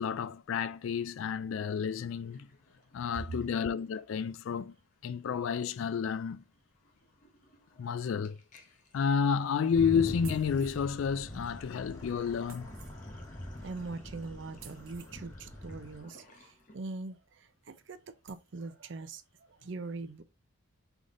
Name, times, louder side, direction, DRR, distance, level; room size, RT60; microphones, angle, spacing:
voice 1, 0.0-2.5 2.9-4.7 5.0-6.4 7.8-8.4 8.9-12.7, left 6 dB, 70° left, 0.3 m, -31 dB
Sink (filling or washing), 2.3-4.5 4.8-5.1 5.3-16.8, left 1 dB, 35° left, 0.9 m, -58 dB
sound 1, 9.7-16.0, left 1 dB, 15° left, 1.1 m, -43 dB
sound 2, 10.2-10.9 12.5-13.0 14.6-15.1 17.1-17.2 17.6-17.7 18.3-18.5, right 8 dB, 80° right, 0.8 m, -53 dB
voice 2, 13.6-20.2, right 3 dB, 55° right, 0.5 m, -42 dB
3.8 x 3.5 x 3.7 m
head